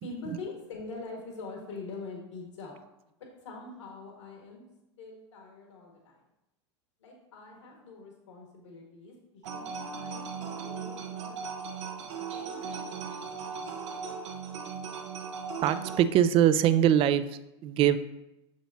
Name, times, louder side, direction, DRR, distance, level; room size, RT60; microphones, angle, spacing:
voice 1, 0.0-2.8 3.4-4.7 5.0-6.2 7.0-11.4 11.9-13.7, left 3 dB, 75° left, 0 dB, 1.6 m, -44 dB
sound 1, 9.4-16.0, right 5 dB, 70° right, 0.9 m, -38 dB
voice 2, 15.6-18.0, right 10 dB, 35° right, 13 dB, 0.4 m, -23 dB
6.8 x 6.1 x 2.7 m, 0.90 s
hypercardioid pair, 95°, 16 cm